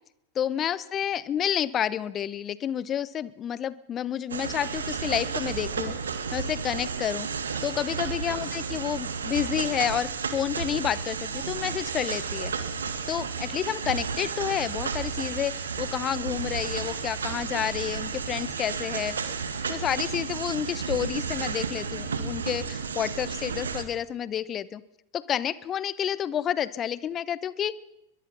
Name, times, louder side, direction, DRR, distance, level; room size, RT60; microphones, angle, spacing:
voice 1, 0.3-5.9 6.3-7.3 7.6-12.5 13.1-19.2 19.7-24.8 25.1-27.7, left 9 dB, 25° left, 19 dB, 0.8 m, -30 dB
sound 1, 4.3-23.8, right 6 dB, 70° right, 1.9 m, -32 dB
22.0 x 22.0 x 5.6 m, 0.87 s
figure-of-eight pair, 90°, 0 cm